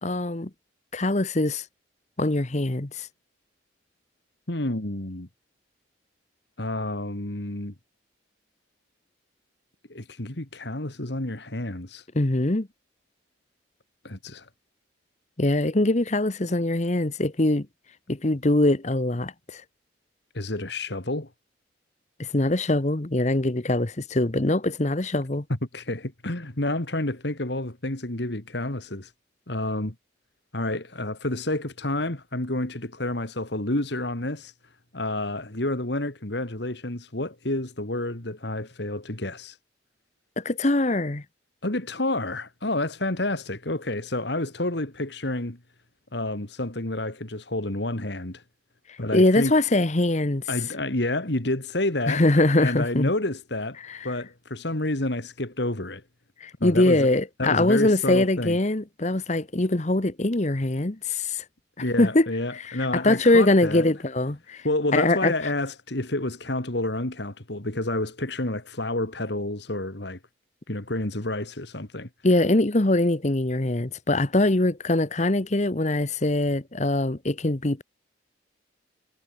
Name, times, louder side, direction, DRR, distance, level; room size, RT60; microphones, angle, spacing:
voice 1, 0.0-0.5 0.9-1.6 2.2-3.1 12.1-12.7 15.4-17.7 18.1-19.6 22.2-25.4 40.4-41.2 49.1-50.4 52.1-53.1 53.9-54.0 56.4-61.4 62.0-62.3 62.7-64.6 64.9-65.3 72.2-77.8, left 2 dB, 35° left, 1.1 m, -22 dB
voice 2, 4.5-5.3 6.6-7.7 9.9-12.0 14.0-14.5 20.3-21.3 25.7-29.1 29.5-29.9 30.5-34.5 34.9-39.6 41.6-45.6 46.1-48.4 49.0-49.5 50.5-52.2 52.6-56.0 56.6-57.1 57.4-58.6 61.8-63.9 64.6-70.2 70.7-72.1, left 1 dB, 60° left, 2.4 m, -29 dB
head